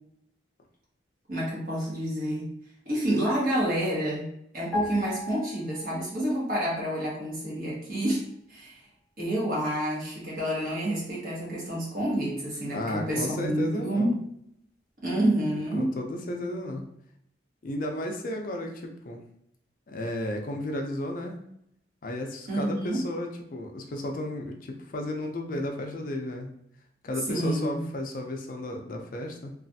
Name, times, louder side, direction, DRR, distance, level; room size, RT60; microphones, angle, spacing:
voice 1, 1.3-2.5 2.8-4.2 4.5-8.2 8.5-8.8 9.2-14.2 15.0-15.9 22.5-23.0 27.3-27.8, right 1 dB, 50° right, -6 dB, 1.4 m, -28 dB
sound 1, 4.7-6.3 6.6-6.8, left 1 dB, 5° left, 1.0 m, -35 dB
voice 2, 12.7-14.1 15.7-16.8 17.6-19.2 19.9-21.4 22.0-26.5 27.0-29.5, left 1 dB, 50° left, 2 dB, 0.4 m, -33 dB
3.2 x 2.3 x 2.6 m, 0.73 s
head